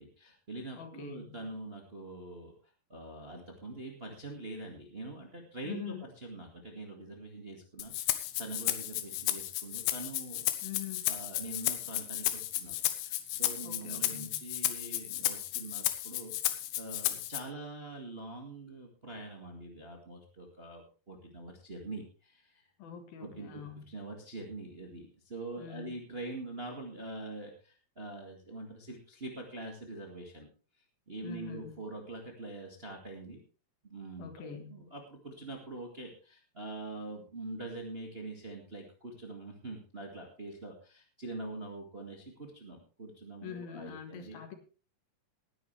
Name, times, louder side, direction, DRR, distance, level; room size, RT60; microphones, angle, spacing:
voice 1, 0.0-2.5 2.9-10.5 11.1-22.6 23.2-30.5 31.1-33.4 33.8-44.4, right 2 dB, 35° right, 1 dB, 0.9 m, -44 dB
voice 2, 0.8-1.4 5.6-6.0 10.6-11.0 13.6-14.3 22.8-23.9 25.6-26.0 31.2-31.8 34.2-34.8 43.4-44.6, left 8 dB, 60° left, 6 dB, 3.4 m, -44 dB
Rattle (instrument), 7.8-17.4, left 14 dB, 85° left, 3.1 m, -33 dB
19.0 x 10.0 x 3.4 m, 0.35 s
omnidirectional pair, 5.0 m